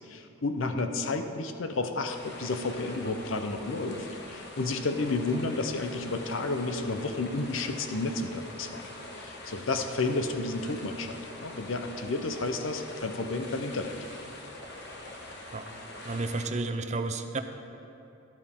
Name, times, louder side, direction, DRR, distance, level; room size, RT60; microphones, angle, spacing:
voice 1, 0.1-8.8 9.2-14.0, left 3 dB, 80° left, 7 dB, 0.7 m, -31 dB
sound 1, 2.1-16.5, left 1 dB, 55° left, 1.4 m, -44 dB
voice 2, 16.0-17.4, right 3 dB, 35° right, 8 dB, 0.6 m, -32 dB
12.5 x 12.0 x 3.7 m, 3.0 s
head